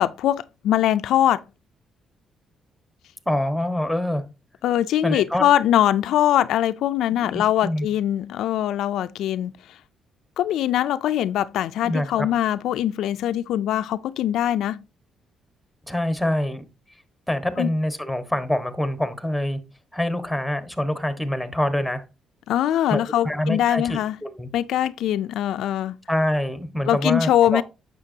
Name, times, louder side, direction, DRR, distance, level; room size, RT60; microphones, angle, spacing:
voice 1, 0.0-1.4 4.6-9.5 10.4-14.8 17.6-17.7 22.5-24.2 24.5-26.0 26.9-27.6, left 11 dB, 80° left, 0.4 m, -22 dB
voice 2, 3.3-4.2 5.0-5.4 7.3-7.9 11.8-12.3 15.9-16.6 17.3-19.6 19.9-22.0 22.9-24.5 26.1-27.6, left 1 dB, ahead, 1.4 m, -25 dB
9.7 x 6.8 x 2.8 m
cardioid pair, 90°, 0 cm